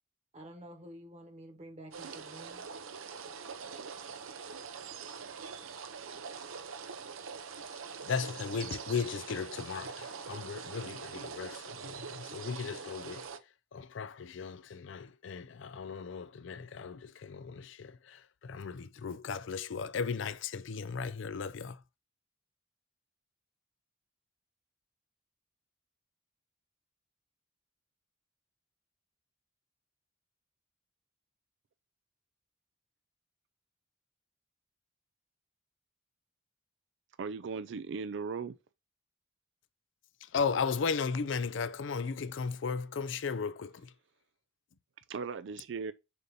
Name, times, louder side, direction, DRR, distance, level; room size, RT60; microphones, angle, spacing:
voice 1, 0.3-2.6, right 1 dB, 30° right, 1.3 m, -49 dB
sound 1, 1.9-13.4, right 6 dB, 85° right, 0.7 m, -44 dB
voice 2, 7.7-13.3 13.7-21.8 40.2-43.9, left 5 dB, 65° left, 0.4 m, -36 dB
voice 3, 37.2-38.5 45.1-45.9, right 5 dB, 60° right, 0.4 m, -37 dB
6.8 x 2.8 x 5.2 m
head